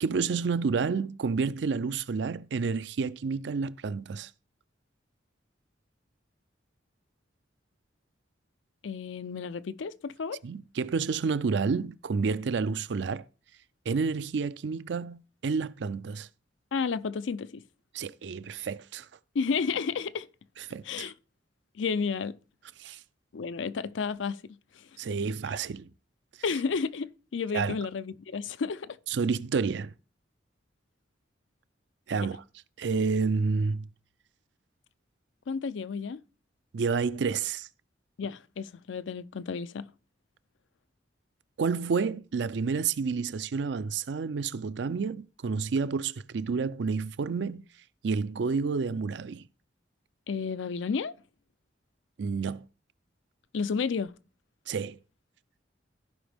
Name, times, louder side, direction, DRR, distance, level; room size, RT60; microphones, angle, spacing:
voice 1, 0.0-4.3 10.4-13.2 13.9-16.3 17.9-19.1 20.6-21.1 22.8-23.0 25.0-25.9 27.5-27.8 29.1-29.9 32.1-32.4 32.8-33.9 36.7-37.7 41.6-47.6 48.0-49.4 52.2-52.6 54.7-55.0, right 5 dB, 70° right, 0.4 m, -29 dB
voice 2, 8.8-10.4 16.7-17.6 19.3-20.3 20.9-21.1 21.8-22.4 23.3-24.6 26.4-29.0 35.5-36.2 38.2-39.9 50.3-51.1 53.5-54.1, left 5 dB, 85° left, 0.5 m, -32 dB
15.0 x 5.1 x 3.4 m
head